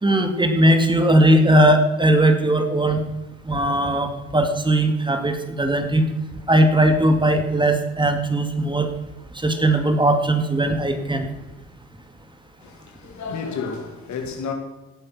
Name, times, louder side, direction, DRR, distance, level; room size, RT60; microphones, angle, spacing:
voice 1, 0.0-3.0 3.5-6.1 6.5-8.9 9.4-11.3, right 1 dB, 15° right, 2.2 m, -18 dB
voice 2, 12.6-14.5, left 5 dB, 70° left, 2.7 m, -31 dB
17.5 x 7.6 x 6.2 m
supercardioid pair, 75°, 30 cm